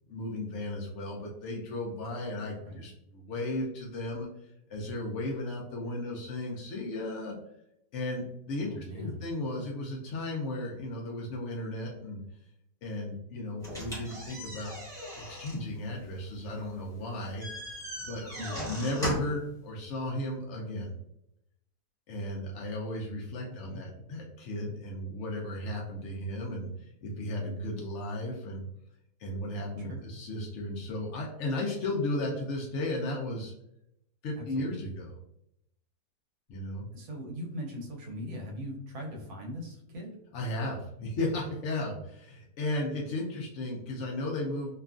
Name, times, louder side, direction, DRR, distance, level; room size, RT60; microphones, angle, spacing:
voice 1, 0.1-7.4 7.9-12.2 12.8-14.8 15.3-17.6 18.0-18.2 18.7-20.9 22.1-28.7 29.2-33.5 34.2-35.1 36.5-36.9 40.3-44.8, left 1 dB, 75° left, -2 dB, 0.6 m, -35 dB
voice 2, 8.6-9.2 18.4-18.7 23.5-24.0 29.8-30.0 34.4-34.9 36.9-40.2, equal, 70° right, 0 dB, 1.2 m, -40 dB
sound 1, 13.6-19.5, equal, ahead, 0.9 m, -39 dB
2.9 x 2.4 x 2.3 m, 0.78 s
omnidirectional pair, 1.8 m